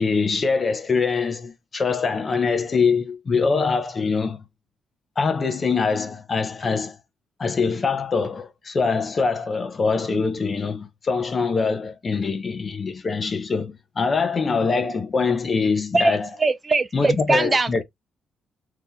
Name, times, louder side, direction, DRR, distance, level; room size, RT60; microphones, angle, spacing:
voice 1, 0.0-4.4 5.2-7.0 7.4-16.3 16.9-17.8, left 4 dB, 35° left, 0.7 m, -23 dB
voice 2, 15.9-17.8, right 3 dB, 25° right, 0.4 m, -21 dB
2.9 x 2.5 x 3.6 m
cardioid pair, 90°, 0 cm